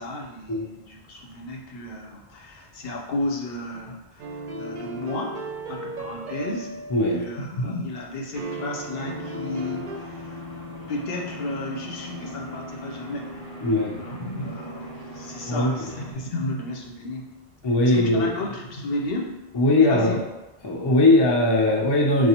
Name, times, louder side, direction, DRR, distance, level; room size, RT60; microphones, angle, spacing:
voice 1, 0.0-5.4 5.7-6.7 7.1-10.4 10.9-13.4 14.0-17.3 17.8-19.4 19.7-20.2, left 2 dB, 65° left, 0 dB, 0.8 m, -33 dB
sound 1, 4.2-7.5 8.4-10.0, right 3 dB, 60° right, 0.6 m, -35 dB
voice 2, 6.9-7.2 13.6-14.0 15.5-15.7 17.6-18.3 19.5-20.2 20.6-22.3, left 2 dB, 35° left, -1 dB, 0.4 m, -19 dB
sound 2, 9.0-16.1, left 1 dB, 10° right, 0.8 m, -39 dB
4.7 x 2.4 x 2.8 m, 0.99 s
omnidirectional pair, 1.1 m